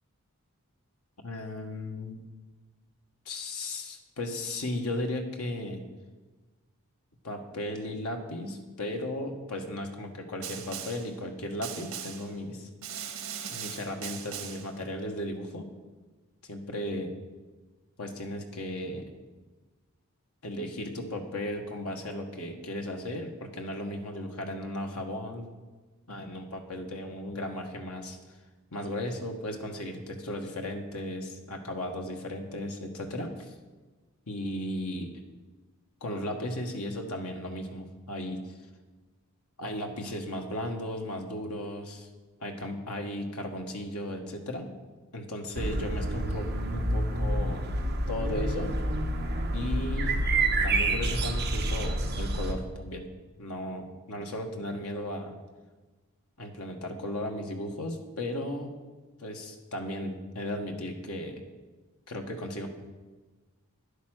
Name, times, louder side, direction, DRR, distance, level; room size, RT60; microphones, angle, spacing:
voice 1, 1.2-2.2 3.2-5.8 7.2-12.7 13.5-15.7 16.5-17.1 18.0-19.1 20.4-25.5 26.1-28.2 28.7-33.5 34.3-35.1 36.0-38.4 39.6-42.1 42.4-44.7 45.1-47.6 48.1-48.8 49.5-50.3 50.6-53.1 53.4-55.3 56.4-58.7 59.2-61.4 62.1-62.7, left 1 dB, 80° left, 3 dB, 1.5 m, -35 dB
Snare drum, 10.4-11.1 11.6-12.3 12.8-14.7, right 8 dB, 75° right, 1.3 m, -39 dB
Blackbird botanical gardens Aarhus, 45.5-52.5, right 2 dB, 45° right, 1.2 m, -28 dB
10.5 x 8.3 x 6.4 m, 1.3 s
head